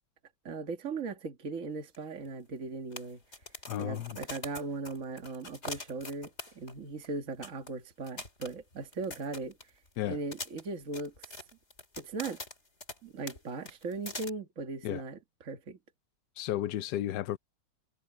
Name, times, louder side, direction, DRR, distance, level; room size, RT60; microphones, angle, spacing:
voice 1, 0.5-3.2 3.8-9.6 10.1-11.4 12.0-12.4 13.0-15.8, right 4 dB, 45° right, 1.9 m, -38 dB
sound 1, 1.9-2.0 2.2-2.3 2.9-6.8 7.0-7.1 7.4-7.7 8.1-9.9 10.3-13.0 13.3-13.4 13.7-14.3, left 2 dB, 35° left, 4.3 m, -43 dB
voice 2, 3.7-4.2 10.0-10.2 14.8-15.0 16.4-17.4, left 13 dB, 70° left, 1.3 m, -33 dB
omnidirectional pair, 1.9 m